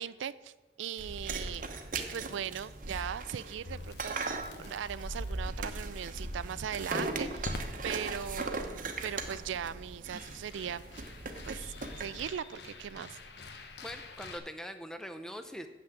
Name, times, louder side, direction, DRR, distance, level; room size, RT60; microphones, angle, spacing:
voice 1, 0.0-1.7 2.0-11.0 11.4-13.2, right 8 dB, 85° right, 17 dB, 0.3 m, -39 dB
sound 1, 1.0-12.2, right 3 dB, 45° right, 0.9 m, -38 dB
Crackle, 3.6-14.4, left 2 dB, 60° left, 0.9 m, -48 dB
voice 2, 13.8-15.7, equal, 5° left, 8 dB, 0.5 m, -42 dB
8.0 x 5.9 x 7.6 m, 1.1 s
head